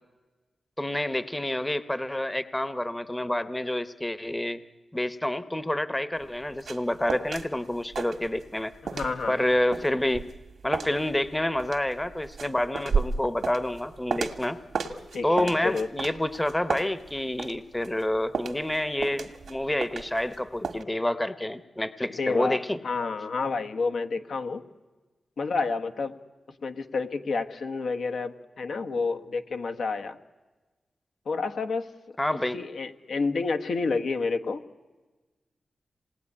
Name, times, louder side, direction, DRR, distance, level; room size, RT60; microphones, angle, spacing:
voice 1, 0.8-4.6 4.9-8.7 9.3-10.3 10.6-14.6 15.2-22.8 32.2-32.6, left 1 dB, 15° left, 13 dB, 0.8 m, -28 dB
sound 1, 6.2-7.5 7.7-8.6 8.9-14.5 14.7-17.6 17.8-20.4 20.6-20.8, right 5 dB, 85° right, 1.6 m, -32 dB
voice 2, 8.8-9.4 15.1-15.9 22.2-24.6 25.4-26.1 26.6-30.2 31.2-31.9 32.5-34.6, left 4 dB, 80° left, 6 dB, 1.2 m, -29 dB
26.5 x 19.0 x 9.8 m, 1.3 s
wide cardioid pair, 100°, 0 cm